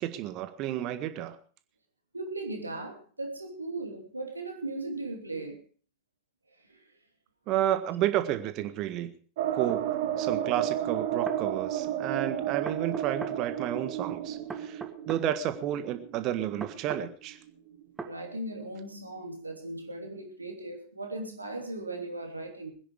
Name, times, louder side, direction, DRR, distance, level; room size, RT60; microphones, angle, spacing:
voice 1, 0.0-1.4 7.5-9.1 9.5-17.4, right 12 dB, 40° right, 10 dB, 1.6 m, -31 dB
voice 2, 2.1-5.6 6.7-6.9 18.0-22.7, right 2 dB, 80° right, 3 dB, 3.0 m, -38 dB
sound 1, 9.4-17.9 18.2-18.3 18.6-18.7, right 11 dB, 55° right, 1.9 m, -32 dB
sound 2, 9.7-9.8 11.0-11.4 12.6-13.4 14.5-15.3 16.6-17.1 18.0-18.2, right 4 dB, 15° right, 1.8 m, -39 dB
21.5 x 10.0 x 4.8 m, 0.40 s
figure-of-eight pair, 90°, 0 cm